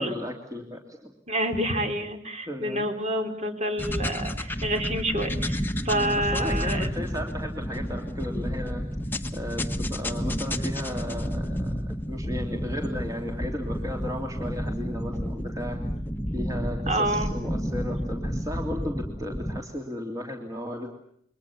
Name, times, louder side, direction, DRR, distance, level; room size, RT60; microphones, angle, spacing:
voice 1, 0.0-1.1 2.5-2.9 5.9-8.8 9.3-15.8 16.3-20.9, left 1 dB, 20° right, 3 dB, 2.9 m, -35 dB
voice 2, 1.3-6.9 16.9-17.3, right 1 dB, 35° right, 6 dB, 3.8 m, -28 dB
sound 1, 3.8-19.6, equal, 10° left, 1.4 m, -31 dB
28.5 x 23.5 x 7.2 m, 0.70 s
head